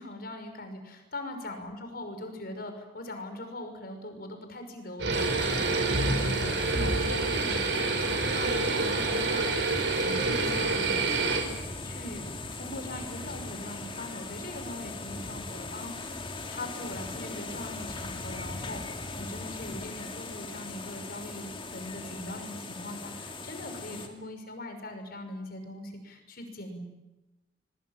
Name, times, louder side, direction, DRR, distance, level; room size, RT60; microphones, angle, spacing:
voice 1, 0.0-12.2 12.5-18.8 19.1-26.8, left 1 dB, 55° left, 6 dB, 5.7 m, -41 dB
sound 1, 5.0-11.4, right 3 dB, 65° right, 5.3 m, -27 dB
sound 2, 5.1-24.1, left 2 dB, 30° left, 3.0 m, -39 dB
25.0 x 23.0 x 9.0 m, 1.0 s
head